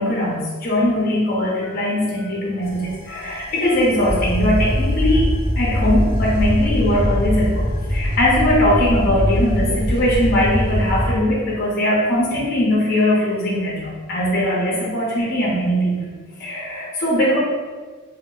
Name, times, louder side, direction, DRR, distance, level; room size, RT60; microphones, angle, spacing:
voice 1, 0.0-7.6 7.9-16.1 16.4-17.4, left 1 dB, 45° left, -5 dB, 0.6 m, -20 dB
sound 1, 2.6-11.1, equal, 40° right, 0.8 m, -22 dB
2.1 x 2.0 x 3.7 m, 1.4 s
head